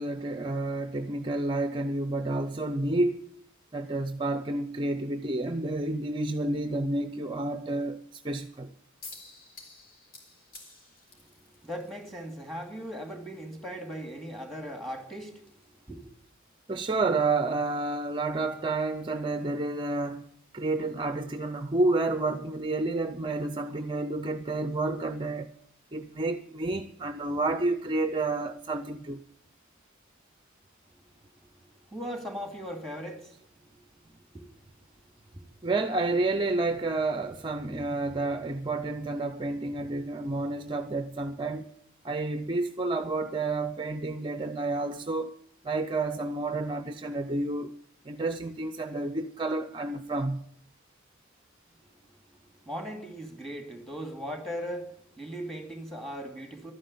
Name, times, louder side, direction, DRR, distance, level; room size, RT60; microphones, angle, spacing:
voice 1, 0.0-3.2 3.7-8.7 16.7-20.2 20.5-25.5 25.9-29.2 35.6-41.7 42.0-45.3 45.6-47.7 48.0-50.5, right 2 dB, 25° right, 0.6 m, -30 dB
sound 1, 9.0-22.4, left 3 dB, 45° left, 3.7 m, -56 dB
voice 2, 11.2-16.1 31.0-35.5 52.0-56.7, equal, ahead, 2.5 m, -40 dB
12.5 x 9.7 x 8.5 m
head